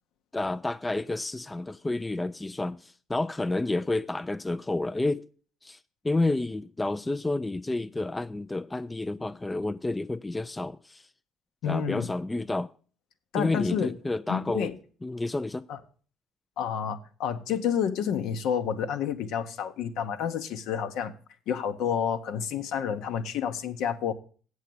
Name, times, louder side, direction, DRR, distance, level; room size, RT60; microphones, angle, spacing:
voice 1, 0.3-5.3 5.6-5.8 6.0-11.1 11.7-12.7 13.3-14.7 15.0-15.6, left 2 dB, 15° left, 0.4 m, -30 dB
voice 2, 11.6-12.1 13.3-13.9 14.3-14.8 15.7-15.8 16.6-21.1 21.5-24.1, left 8 dB, 70° left, 0.9 m, -29 dB
8.4 x 6.4 x 6.8 m
hypercardioid pair, 55°, 0 cm